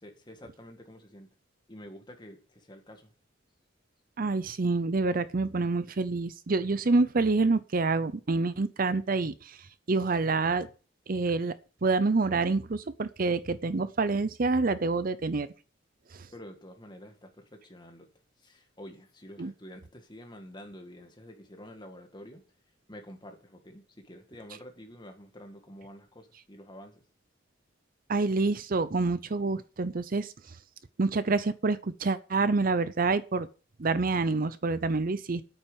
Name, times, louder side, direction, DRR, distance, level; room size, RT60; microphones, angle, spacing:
voice 1, 0.0-1.3 1.7-3.1 16.3-18.1 18.4-22.4 22.9-27.0, equal, 25° left, 2.0 m, -48 dB
voice 2, 4.2-9.6 9.9-10.7 11.1-11.5 11.8-15.5 16.1-16.3 19.4-19.5 28.1-30.3 31.0-33.5 33.8-35.4, right 3 dB, 45° right, 0.6 m, -27 dB
9.1 x 8.7 x 6.9 m
head